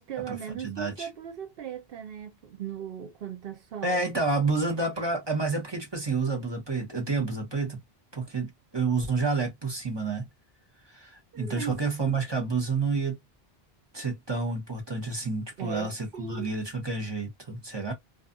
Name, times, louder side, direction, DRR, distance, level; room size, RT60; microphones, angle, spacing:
voice 1, 0.0-4.1 11.3-11.8 15.6-16.6, right 9 dB, 70° right, 0.8 m, -38 dB
voice 2, 0.6-1.1 3.8-7.8 8.1-10.2 10.9-13.2 13.9-17.9, right 3 dB, 25° right, 0.9 m, -29 dB
2.4 x 2.3 x 2.4 m
omnidirectional pair, 1.0 m